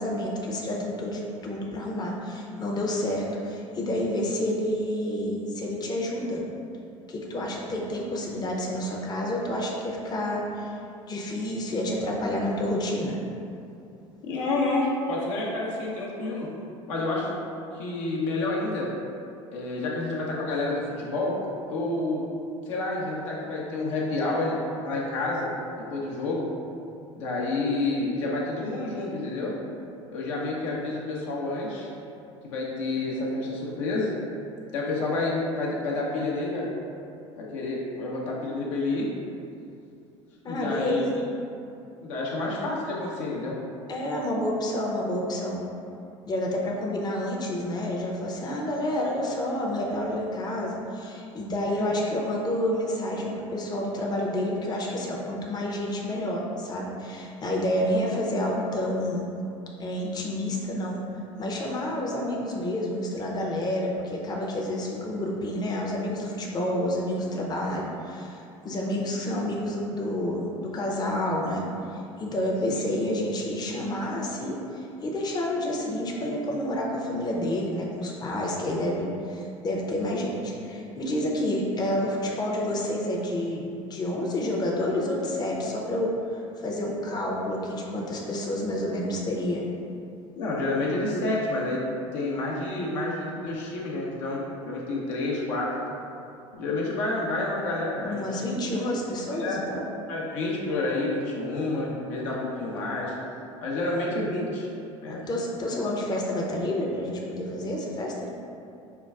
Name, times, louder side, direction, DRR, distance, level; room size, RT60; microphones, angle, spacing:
voice 1, 0.0-6.4 7.1-10.8 11.1-13.2 40.4-41.2 43.9-45.6 46.3-59.2 59.8-61.0 61.4-89.7 98.1-99.8 105.1-108.3, left 1 dB, 25° left, -2 dB, 0.6 m, -29 dB
voice 2, 14.2-16.5 16.9-17.3 17.7-18.9 19.5-21.4 21.7-22.3 22.7-25.5 25.9-26.5 27.1-29.6 30.1-31.9 32.4-34.1 34.7-36.7 37.4-39.1 40.5-41.0 42.0-43.6 51.7-51.9 72.7-72.8 90.4-91.8 92.1-95.7 96.5-98.3 99.3-99.6 100.1-103.1 103.6-104.7 105.0-105.3, left 2 dB, 75° left, -4 dB, 0.7 m, -29 dB
5.5 x 2.2 x 2.3 m, 2.6 s
hypercardioid pair, 70°, 16 cm